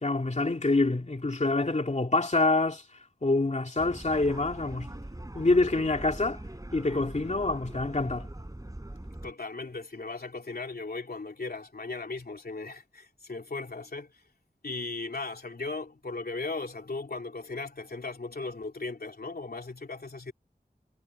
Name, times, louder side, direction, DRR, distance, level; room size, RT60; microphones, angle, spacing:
voice 1, 0.0-2.8 3.2-4.9 5.3-6.4 6.7-8.3, left 2 dB, 45° left, 2.7 m, -26 dB
sound 1, 3.8-9.3, right 1 dB, 20° right, 4.4 m, -42 dB
voice 2, 9.2-14.2 14.6-20.3, left 3 dB, 70° left, 3.1 m, -37 dB
wide cardioid pair, 55°, 17 cm